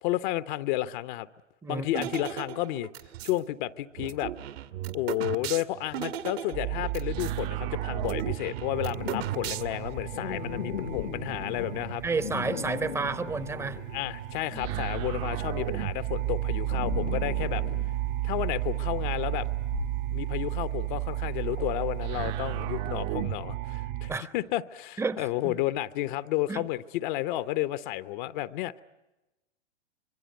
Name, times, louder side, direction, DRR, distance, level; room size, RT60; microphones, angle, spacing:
voice 1, 0.0-1.3 1.7-2.9 3.2-4.3 4.9-12.0 13.9-17.6 18.2-19.5 20.1-28.8, left 15 dB, 45° left, 14 dB, 0.9 m, -31 dB
sound 1, 1.9-3.4 4.0-7.4 7.6-7.7 8.0-9.9, right 11 dB, 60° right, 1.5 m, -36 dB
sound 2, 6.5-24.2, right 13 dB, 40° right, 0.9 m, -33 dB
sound 3, 8.7-14.3 14.6-22.5, left 10 dB, 70° left, 1.2 m, -39 dB
voice 2, 12.0-13.8 14.5-14.9 24.1-24.3 25.0-25.6 26.5-26.6, right 4 dB, 10° right, 15 dB, 0.8 m, -31 dB
25.5 x 22.5 x 9.4 m, 1.0 s
hypercardioid pair, 115°, 35 cm